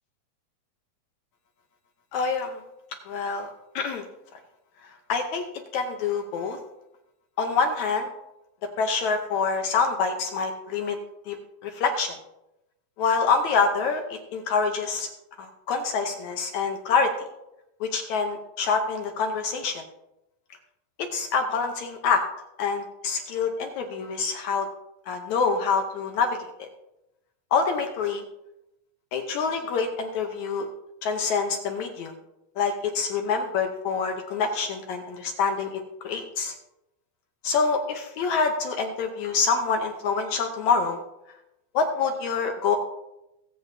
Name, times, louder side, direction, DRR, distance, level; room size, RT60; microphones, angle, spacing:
voice 1, 2.1-2.6 3.1-3.5 3.8-4.1 5.1-5.4 5.7-6.6 7.4-8.1 8.8-11.0 11.3-11.4 11.6-12.2 13.0-15.1 15.4-17.1 17.8-19.8 21.1-22.2 22.6-24.7 25.1-26.7 27.5-28.2 29.1-30.7 31.0-32.1 32.6-36.5 37.4-41.0 41.7-42.8, left 5 dB, 70° left, 5 dB, 1.9 m, -26 dB
21.5 x 7.8 x 2.7 m, 0.91 s
omnidirectional pair, 4.0 m